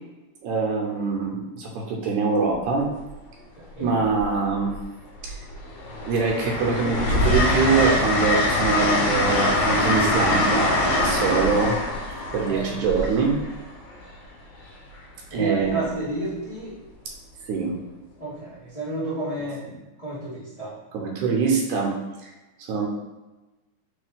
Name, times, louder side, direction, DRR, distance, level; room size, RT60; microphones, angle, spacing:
voice 1, 0.4-2.9 3.8-4.7 5.2-5.4 6.1-11.8 12.3-13.4 15.3-15.8 17.5-17.7 20.9-21.9 22.2-22.3 22.6-22.9, right 4 dB, 80° right, 0 dB, 2.2 m, -24 dB
Train, 2.5-2.8 4.1-4.8 5.2-14.0 15.6-15.8, left 1 dB, 70° left, 1.5 m, -23 dB
voice 2, 3.6-3.9 12.3-12.8 15.3-16.8 18.2-19.6 20.0-20.7, right 2 dB, 50° left, -12 dB, 0.4 m, -31 dB
4.7 x 3.2 x 3.6 m, 1.1 s
omnidirectional pair, 3.6 m